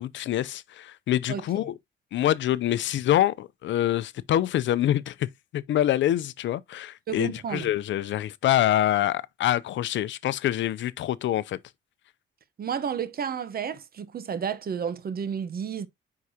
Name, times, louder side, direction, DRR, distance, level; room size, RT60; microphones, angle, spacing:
voice 1, 0.0-1.7 2.1-5.3 5.5-11.6, left 12 dB, 70° left, 0.6 m, -25 dB
voice 2, 7.1-7.7 12.6-15.9, right 7 dB, 50° right, 1.0 m, -31 dB
9.4 x 4.8 x 2.8 m
cardioid pair, 90°, 20 cm